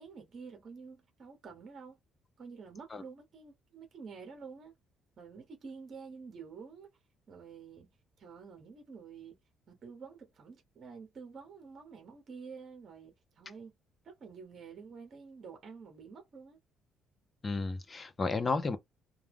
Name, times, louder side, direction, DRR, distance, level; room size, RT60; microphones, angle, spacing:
voice 1, 0.0-2.0 2.4-4.7 5.2-6.9 7.3-9.4 9.7-13.7 14.0-16.6, right 5 dB, 45° right, 1.0 m, -49 dB
voice 2, 17.4-18.8, left 3 dB, 20° left, 0.5 m, -32 dB
2.3 x 2.2 x 3.3 m
cardioid pair, 135°, 0 cm